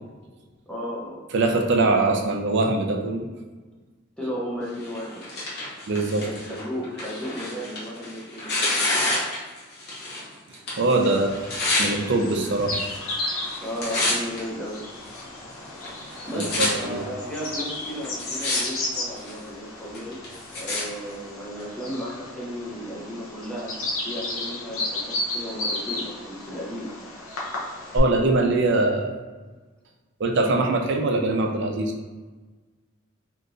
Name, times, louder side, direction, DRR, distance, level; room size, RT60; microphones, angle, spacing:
voice 1, 0.7-1.2 4.2-5.2 6.2-8.9 9.3-9.4 13.6-14.8 16.2-20.2 20.5-23.7 24.0-26.9, equal, 5° left, -6 dB, 0.7 m, -34 dB
voice 2, 1.3-3.3 5.9-6.3 10.8-11.3 11.8-12.8 16.4-17.0 27.9-29.1 30.2-31.9, right 2 dB, 60° right, 2 dB, 0.5 m, -22 dB
Tearing, 4.8-10.3 10.5-11.9 12.6-13.1 13.4-14.4 15.0-15.1 15.8-16.7 17.4-17.5 18.0-18.6 18.9-19.4 19.9-20.8 21.6-21.7, left 2 dB, 55° left, 1.1 m, -28 dB
Bird vocalization bird call bird song, 11.0-28.0, left 2 dB, 75° left, 0.7 m, -34 dB
3.5 x 2.9 x 2.5 m, 1.3 s
head